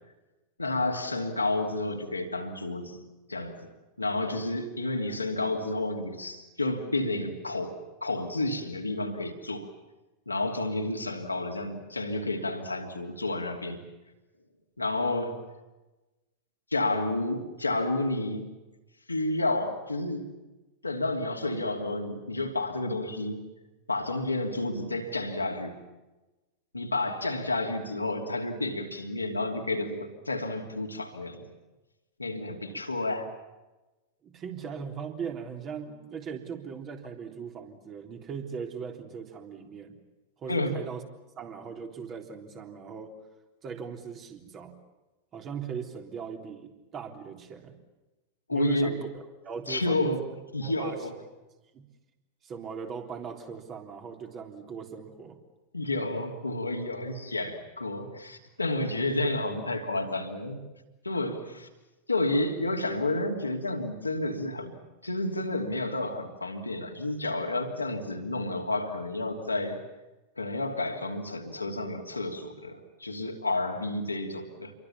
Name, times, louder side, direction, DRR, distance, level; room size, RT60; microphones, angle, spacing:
voice 1, 0.6-3.0 3.3-3.6 4.0-9.7 10.3-13.8 14.8-15.4 16.7-18.5 19.1-20.2 20.8-23.4 23.9-25.7 26.7-31.5 32.2-33.3 40.5-40.8 48.5-49.0 49.7-50.2 50.5-51.1 55.7-60.7 61.0-61.7 62.1-64.8 65.0-69.8 70.4-74.7, left 2 dB, 85° left, 2 dB, 2.9 m, -30 dB
voice 2, 34.2-40.0 40.4-41.0 41.4-43.1 43.6-44.8 45.3-47.7 48.5-50.1 50.6-51.0 51.7-51.8 52.4-55.4, right 6 dB, 30° right, 4 dB, 3.6 m, -39 dB
28.5 x 23.5 x 7.3 m, 1.1 s
figure-of-eight pair, 90°, 0 cm